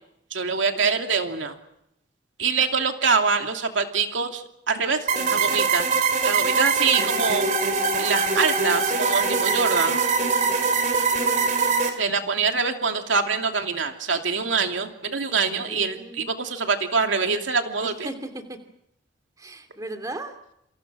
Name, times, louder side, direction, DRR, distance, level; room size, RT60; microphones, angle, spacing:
voice 1, 0.3-1.5 2.4-5.9 6.2-7.5 8.0-10.0 11.8-18.1, right 5 dB, 90° right, 4 dB, 2.8 m, -24 dB
voice 2, 5.1-5.6 6.8-7.4 9.4-9.9 15.6-16.4 17.8-18.6 19.4-20.3, right 1 dB, 20° right, 7 dB, 2.8 m, -38 dB
sound 1, 5.1-11.9, right 4 dB, 40° right, 3.8 m, -22 dB
28.0 x 27.0 x 6.3 m, 0.80 s
head